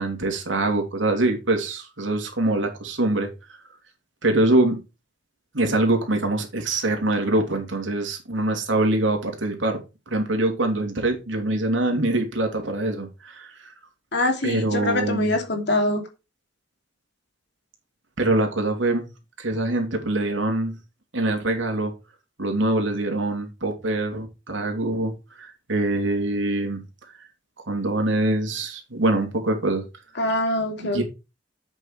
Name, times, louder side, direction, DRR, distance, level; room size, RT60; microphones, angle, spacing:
voice 1, 0.0-3.3 4.2-4.8 5.5-9.8 10.1-13.7 14.4-15.4 18.2-19.1 19.4-20.8 21.1-21.9 22.4-25.1 25.4-26.8 27.7-29.8 30.8-31.0, right 2 dB, 80° right, 2.9 m, -24 dB
voice 2, 14.1-16.0 30.2-31.0, left 2 dB, 65° left, 2.7 m, -24 dB
8.2 x 6.7 x 4.9 m
head